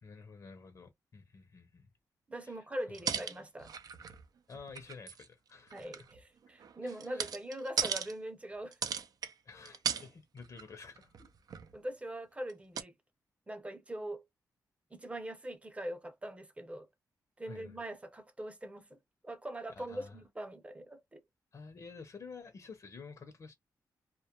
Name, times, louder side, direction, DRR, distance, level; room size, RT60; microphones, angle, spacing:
voice 1, 0.0-1.9 2.4-2.6 2.9-3.1 4.5-6.0 6.8-7.3 9.4-11.1 17.4-17.8 19.8-20.2 21.5-23.5, left 4 dB, 50° left, 0.6 m, -51 dB
voice 2, 2.3-3.7 5.7-8.8 11.7-12.9 13.5-14.2 14.9-16.9 17.4-19.0 19.2-21.2, right 1 dB, 20° right, 0.6 m, -42 dB
sound 1, 2.9-4.2 4.5-5.3 5.7-8.1 8.7-9.3 9.6-10.1 10.4-10.6 11.0-11.7 12.5-12.6 12.8-12.9, right 7 dB, 65° right, 0.4 m, -37 dB
2.2 x 2.1 x 2.9 m
cardioid pair, 95°, 7 cm